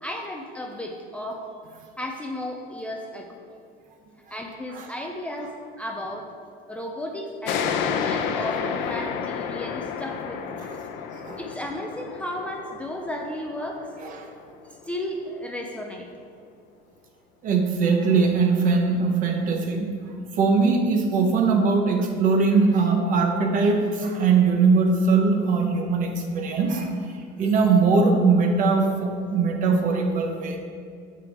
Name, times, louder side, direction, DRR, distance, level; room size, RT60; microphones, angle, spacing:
voice 1, 0.0-1.5 2.0-3.3 4.3-6.3 6.7-10.6 11.4-13.9 14.6-16.1, left 1 dB, 5° left, 0 dB, 0.4 m, -34 dB
sound 1, 7.4-14.6, left 7 dB, 65° left, 0.8 m, -31 dB
voice 2, 17.4-20.0 20.4-26.9 27.4-30.6, right 4 dB, 40° right, 3 dB, 1.0 m, -21 dB
9.8 x 8.2 x 3.5 m, 2.4 s
cardioid pair, 170°, 21 cm